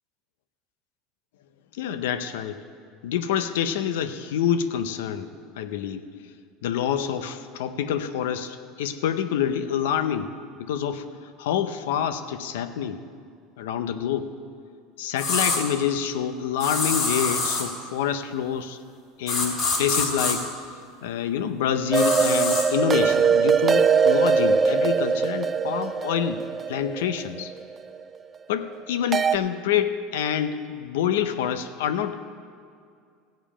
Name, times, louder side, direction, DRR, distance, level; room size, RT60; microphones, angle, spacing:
voice 1, 1.8-2.6 3.0-6.1 6.6-10.3 10.6-11.1 11.4-13.0 13.6-14.4 15.0-18.8 19.2-20.6 21.0-26.4 26.7-27.5 28.5-32.2, left 9 dB, 85° left, 11 dB, 0.7 m, -27 dB
sound 1, 15.2-15.6 16.6-17.7 19.3-20.4 21.9-22.7, left 3 dB, 50° left, 3.0 m, -25 dB
sound 2, 21.9-28.0 29.1-29.4, right 6 dB, 25° right, 0.4 m, -22 dB
15.5 x 5.2 x 8.7 m, 2.2 s
supercardioid pair, 120°, 0 cm